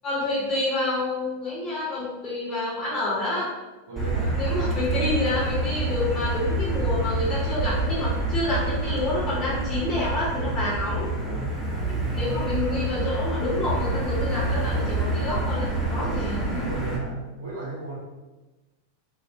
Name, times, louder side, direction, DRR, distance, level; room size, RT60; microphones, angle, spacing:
voice 1, 0.0-3.5 4.3-11.1 12.1-16.6, left 2 dB, 35° left, -8 dB, 0.9 m, -28 dB
voice 2, 3.9-4.4 10.2-10.7 11.1-11.8 16.6-18.0, right 3 dB, 65° right, -9 dB, 0.6 m, -35 dB
Motor vehicle (road), 4.0-17.0, right 2 dB, 5° right, 0.7 m, -27 dB
2.3 x 2.0 x 2.6 m, 1.2 s
figure-of-eight pair, 90°, 0 cm